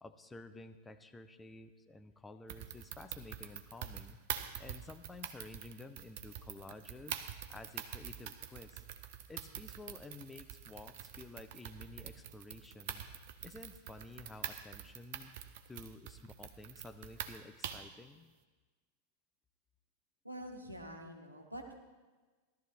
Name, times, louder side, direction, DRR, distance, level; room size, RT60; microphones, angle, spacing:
voice 1, 0.0-4.2 4.6-7.2 7.5-8.8 9.3-13.1 13.4-15.3 15.7-18.3, left 2 dB, 10° left, 8 dB, 0.6 m, -52 dB
sound 1, 2.5-18.0, right 10 dB, 50° right, 0.8 m, -45 dB
voice 2, 20.2-21.8, equal, 85° right, 2 dB, 1.5 m, -46 dB
17.0 x 12.5 x 3.3 m, 1.3 s
figure-of-eight pair, 90°, 0 cm